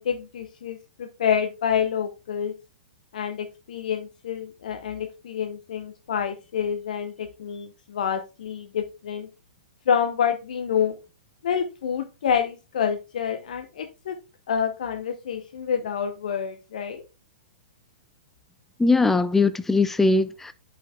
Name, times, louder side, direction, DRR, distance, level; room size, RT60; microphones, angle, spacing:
voice 1, 0.0-2.5 3.1-9.3 9.9-11.0 11.4-14.2 14.5-17.0, left 8 dB, 60° left, 0.8 m, -27 dB
voice 2, 18.8-20.5, left 3 dB, 5° left, 0.4 m, -20 dB
10.5 x 5.8 x 2.3 m
figure-of-eight pair, 105°, 5 cm